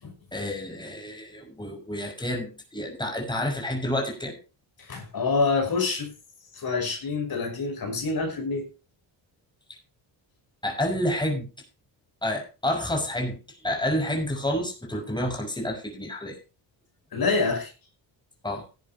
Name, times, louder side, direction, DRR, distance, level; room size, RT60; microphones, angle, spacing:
voice 1, 0.3-4.4 10.6-11.5 12.2-13.4 13.6-16.4 18.4-18.6, left 1 dB, 10° left, 6.0 m, -29 dB
voice 2, 4.8-6.1 6.5-8.7 17.1-17.7, left 4 dB, 50° left, 5.7 m, -26 dB
16.5 x 11.5 x 2.9 m
supercardioid pair, 65°, 47 cm